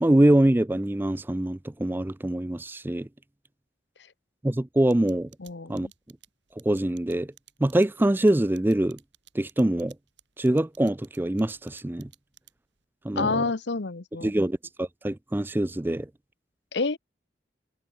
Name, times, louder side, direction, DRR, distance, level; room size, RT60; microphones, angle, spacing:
voice 1, 0.0-3.1 4.4-5.3 5.7-5.9 6.6-7.3 7.6-9.0 9.3-9.9 10.4-12.1 13.0-13.4 14.2-16.1, right 1 dB, 10° right, 0.4 m, -24 dB
sound 1, 4.9-12.8, right 13 dB, 80° right, 4.1 m, -54 dB
voice 2, 5.4-5.9 13.2-14.3 16.7-17.0, left 3 dB, 75° left, 1.0 m, -28 dB
head